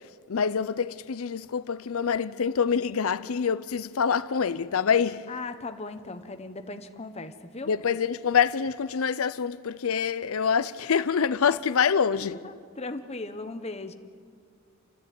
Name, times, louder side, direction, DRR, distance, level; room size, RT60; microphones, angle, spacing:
voice 1, 0.3-5.3 7.7-12.4, left 6 dB, 85° left, 0.6 m, -26 dB
voice 2, 5.3-7.7 12.2-13.9, left 3 dB, 30° left, 0.9 m, -38 dB
29.0 x 13.0 x 9.3 m
head